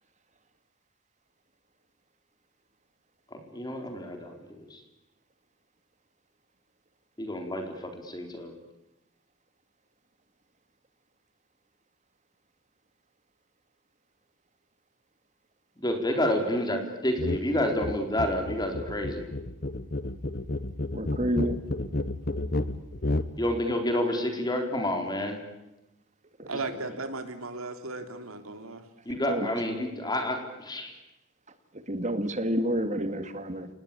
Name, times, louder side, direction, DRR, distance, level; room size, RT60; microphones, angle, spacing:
voice 1, 3.3-4.8 7.2-8.5 15.8-19.3 23.4-25.4 26.5-26.7 29.1-30.9, left 1 dB, 20° left, 4 dB, 4.1 m, -29 dB
sound 1, 17.2-17.4 17.7-23.3, left 2 dB, 45° left, 1.1 m, -31 dB
voice 2, 20.9-21.6 26.4-26.5 29.3-29.5 31.9-33.7, equal, 35° right, 10 dB, 2.1 m, -29 dB
voice 3, 26.5-28.8, right 3 dB, 85° right, 7 dB, 3.4 m, -36 dB
29.0 x 19.5 x 8.6 m, 0.97 s
head